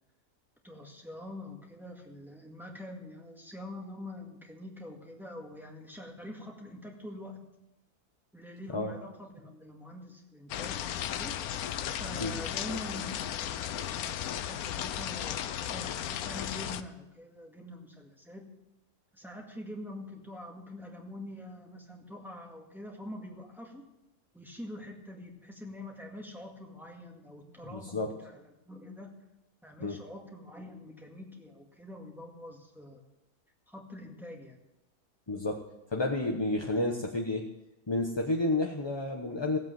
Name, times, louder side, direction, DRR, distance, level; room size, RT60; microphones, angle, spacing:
voice 1, 0.6-7.5 8.3-11.3 11.9-18.4 19.1-23.8 24.3-29.1 29.6-33.0 33.7-34.6, left 1 dB, ahead, 0 dB, 1.9 m, -45 dB
sound 1, 10.5-16.8, left 10 dB, 90° left, 1.2 m, -35 dB
voice 2, 27.6-28.1 29.8-30.0 35.3-35.6 35.9-37.5 37.9-39.6, left 2 dB, 20° left, 1 dB, 0.9 m, -30 dB
16.0 x 8.1 x 7.6 m, 0.96 s
omnidirectional pair, 1.5 m